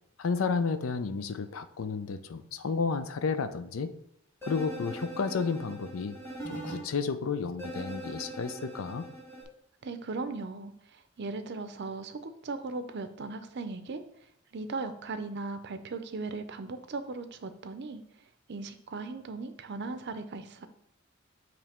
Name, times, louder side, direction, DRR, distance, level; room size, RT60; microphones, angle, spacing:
voice 1, 0.2-3.9 4.4-6.2 6.5-9.1, left 5 dB, 80° left, 11 dB, 0.5 m, -32 dB
sound 1, 4.4-6.8 7.6-9.4, right 1 dB, 10° left, 1.6 m, -41 dB
voice 2, 9.8-14.0 14.5-18.0 18.5-20.7, right 3 dB, 55° right, 9 dB, 0.5 m, -38 dB
7.1 x 3.1 x 4.3 m, 0.72 s
head